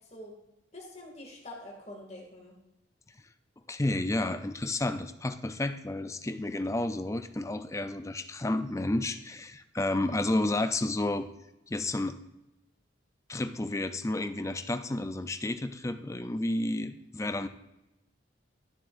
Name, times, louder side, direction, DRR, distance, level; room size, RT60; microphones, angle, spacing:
voice 1, 0.7-2.6, left 1 dB, 35° left, -1 dB, 2.4 m, -45 dB
voice 2, 3.7-11.3 11.7-12.2 13.3-17.5, left 2 dB, 15° left, 9 dB, 0.5 m, -31 dB
12.5 x 7.6 x 2.6 m, 0.92 s
head